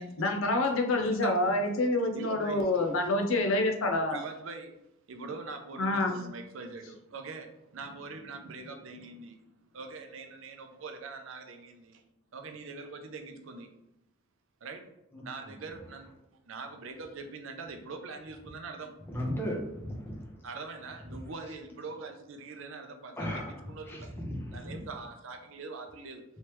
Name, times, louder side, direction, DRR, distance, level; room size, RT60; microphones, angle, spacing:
voice 1, 0.0-4.2 5.8-6.1, left 2 dB, 65° left, 4 dB, 0.6 m, -27 dB
voice 2, 1.0-1.4 2.1-3.1 4.1-4.8 5.1-9.4 9.7-12.0 12.3-13.7 14.6-14.9 15.2-18.9 20.4-24.1 24.5-26.2, right 4 dB, 65° right, 5 dB, 0.5 m, -43 dB
voice 3, 19.1-20.4 23.2-24.8, equal, 10° left, -1 dB, 0.7 m, -36 dB
3.2 x 3.1 x 3.0 m, 0.84 s
head